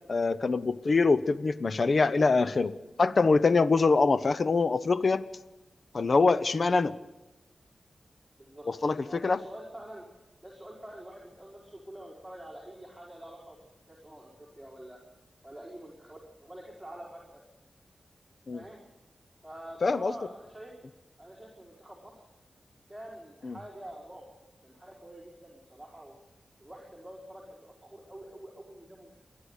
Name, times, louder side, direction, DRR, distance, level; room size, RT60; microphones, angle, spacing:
voice 1, 0.1-5.2 5.9-6.9 8.7-9.4 18.5-18.6 19.8-20.1 23.4-23.6, left 4 dB, 50° left, 14 dB, 0.7 m, -24 dB
voice 2, 9.1-10.1 10.4-13.6 13.9-15.0 15.4-17.4 18.5-18.8 19.4-20.7 21.2-22.2 22.9-24.2 24.6-26.1 26.6-29.2, right 1 dB, ahead, -4 dB, 4.6 m, -46 dB
28.5 x 11.5 x 8.2 m, 1.0 s
wide cardioid pair, 105°, 0 cm